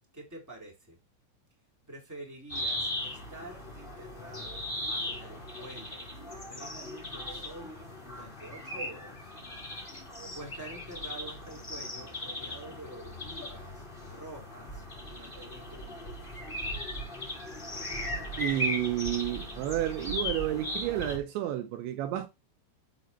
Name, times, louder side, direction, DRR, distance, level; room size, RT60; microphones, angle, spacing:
voice 1, 0.1-1.0 1.9-7.7 8.0-9.3 10.1-16.3, right 1 dB, 5° right, 3.2 m, -48 dB
sound 1, 2.5-21.2, left 1 dB, 15° left, 2.8 m, -38 dB
voice 2, 18.4-22.3, right 13 dB, 80° right, 2.8 m, -31 dB
11.0 x 6.0 x 4.5 m
omnidirectional pair, 5.6 m